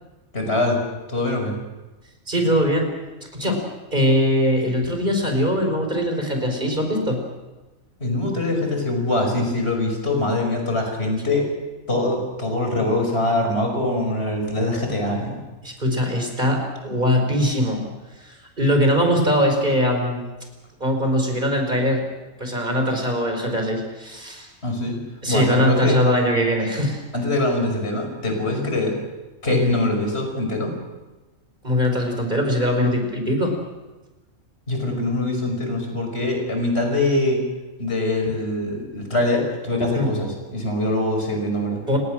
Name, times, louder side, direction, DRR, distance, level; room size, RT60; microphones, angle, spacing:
voice 1, 0.3-0.8 1.1-1.6 8.0-11.5 11.9-15.4 24.6-25.0 25.3-26.0 27.1-29.0 29.4-30.7 34.7-37.4 37.8-41.8, left 2 dB, 50° left, 3 dB, 5.9 m, -23 dB
voice 2, 2.3-2.9 3.3-3.6 3.9-7.2 15.6-17.8 18.2-20.3 20.8-22.0 22.4-24.5 25.2-27.0 29.5-29.7 31.6-33.6 40.0-40.1 41.9-42.0, equal, 35° right, 3 dB, 5.2 m, -21 dB
30.0 x 18.0 x 6.3 m, 1.1 s
omnidirectional pair, 1.4 m